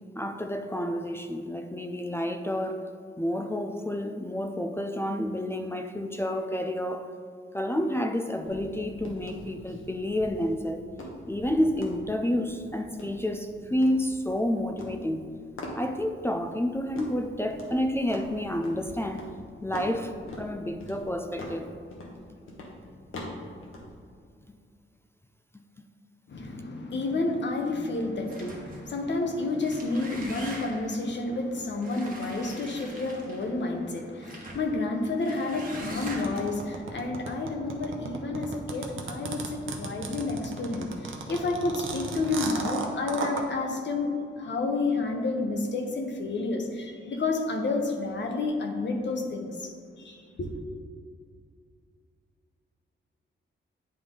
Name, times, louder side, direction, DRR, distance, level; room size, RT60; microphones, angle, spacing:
voice 1, 0.1-2.9 3.2-7.1 7.5-10.9 11.3-15.3 15.7-19.3 19.6-21.7, left 1 dB, 10° left, 0.4 m, -29 dB
sound 1, 8.4-24.0, left 1 dB, 80° left, 1.1 m, -44 dB
voice 2, 26.3-49.7 50.0-50.5, left 3 dB, 60° left, 0.9 m, -30 dB
sound 2, 28.3-28.9 29.5-31.0 31.8-33.5 34.2-34.7 35.2-36.5, right 2 dB, 45° right, 1.2 m, -42 dB
sound 3, 36.0-43.4, right 4 dB, 80° right, 0.8 m, -34 dB
9.5 x 3.4 x 3.7 m
wide cardioid pair, 100°, 21 cm